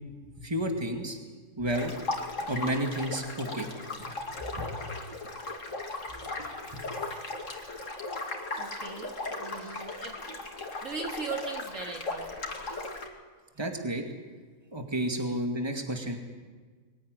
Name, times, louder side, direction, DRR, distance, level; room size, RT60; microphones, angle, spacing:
voice 1, 0.4-1.2 1.6-1.9 2.5-3.7 4.1-4.2 4.6-4.8 6.4-6.8 13.6-14.0 14.7-16.2, right 1 dB, 15° right, 3 dB, 2.3 m, -31 dB
sound 1, 1.7-13.1, left 2 dB, 55° left, 2.8 m, -37 dB
voice 2, 8.6-10.2 10.8-12.9, right 4 dB, 55° right, 2 dB, 2.2 m, -39 dB
22.5 x 15.5 x 9.7 m, 1.4 s
omnidirectional pair, 1.6 m